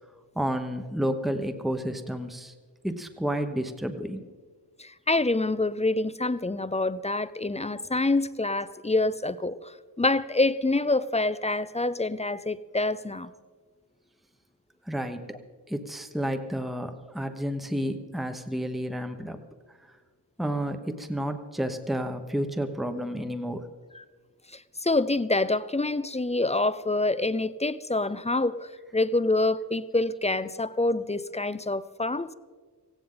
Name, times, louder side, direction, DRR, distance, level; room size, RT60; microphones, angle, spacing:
voice 1, 0.3-2.5 2.8-4.3 14.9-15.2 15.7-19.4 20.4-23.6, equal, ahead, 7 dB, 0.9 m, -31 dB
voice 2, 4.8-13.3 23.9-24.0 24.5-32.3, left 2 dB, 15° left, 15 dB, 0.4 m, -26 dB
18.0 x 16.0 x 3.8 m, 1.5 s
wide cardioid pair, 80°, 41 cm